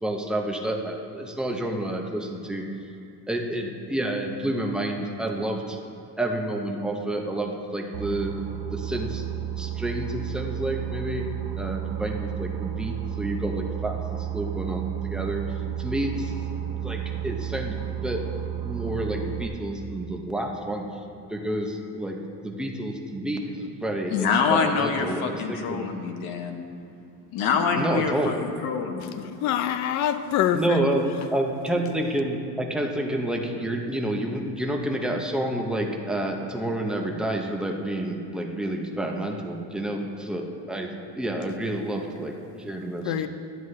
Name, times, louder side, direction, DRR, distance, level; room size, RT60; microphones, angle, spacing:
voice 1, 0.0-2.7 3.3-5.8 6.2-8.3 8.7-9.2 9.6-11.3 11.5-15.4 15.8-16.3 16.8-18.2 18.6-20.8 21.3-25.9 27.7-28.3 30.5-43.1, right 1 dB, ahead, 1 dB, 0.5 m, -29 dB
Boat Water vehicle, 7.9-19.5, right 11 dB, 80° right, 0.8 m, -32 dB
voice 2, 24.1-26.6 27.3-29.2, left 6 dB, 65° left, 3 dB, 0.9 m, -26 dB
voice 3, 29.2-30.8 43.0-43.3, left 10 dB, 45° left, 10 dB, 0.5 m, -25 dB
12.5 x 9.3 x 3.2 m, 2.7 s
cardioid pair, 160°, 39 cm